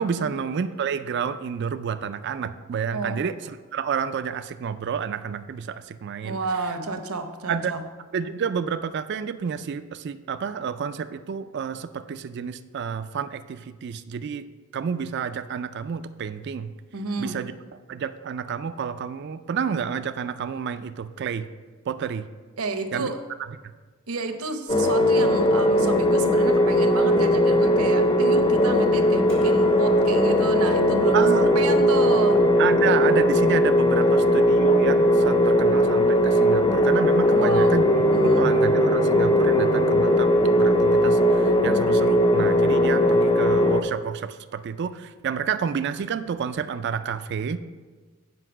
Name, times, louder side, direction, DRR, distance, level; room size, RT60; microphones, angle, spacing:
voice 1, 0.0-3.4 3.7-6.4 7.5-7.7 8.1-14.4 14.7-16.7 17.2-17.5 17.9-21.5 21.9-22.3 22.9-23.1 31.1-31.5 32.6-37.9 38.2-47.6, right 7 dB, 50° right, 11 dB, 0.3 m, -29 dB
voice 2, 6.2-7.8 16.9-17.4 22.6-23.2 24.1-32.5 37.2-37.8 38.1-38.5, right 3 dB, 75° right, 7 dB, 0.8 m, -31 dB
sound 1, 24.7-43.8, equal, 20° left, 0.5 m, -19 dB
Hammer, 29.3-35.5, left 3 dB, 60° left, 2.9 m, -38 dB
7.8 x 5.4 x 6.1 m, 1.4 s
head